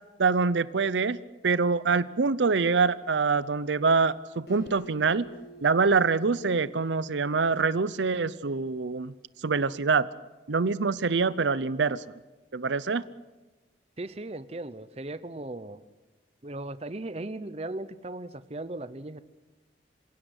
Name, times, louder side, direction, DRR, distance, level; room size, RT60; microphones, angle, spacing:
voice 1, 0.2-1.2 1.4-5.3 5.6-9.1 9.4-10.1 10.5-12.0 12.5-13.0, right 4 dB, 80° right, 17 dB, 0.6 m, -25 dB
Acoustic guitar, 4.5-8.0, right 1 dB, 60° left, 3.3 m, -49 dB
voice 2, 14.0-15.8 16.4-19.2, right 2 dB, 35° right, 14 dB, 0.8 m, -37 dB
27.5 x 16.5 x 8.1 m, 1.2 s
head